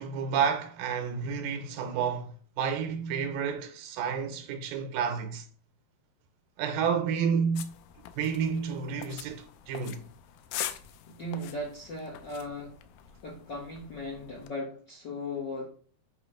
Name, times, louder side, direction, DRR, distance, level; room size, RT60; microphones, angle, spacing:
voice 1, 0.0-2.3 2.6-5.5 6.6-7.8 8.2-10.0, right 6 dB, 85° right, 2.6 m, -30 dB
sound 1, 7.5-14.5, left 11 dB, 80° left, 2.2 m, -43 dB
voice 2, 11.1-12.8 13.2-15.7, left 1 dB, 60° left, 1.1 m, -37 dB
8.1 x 3.2 x 5.0 m
omnidirectional pair, 4.0 m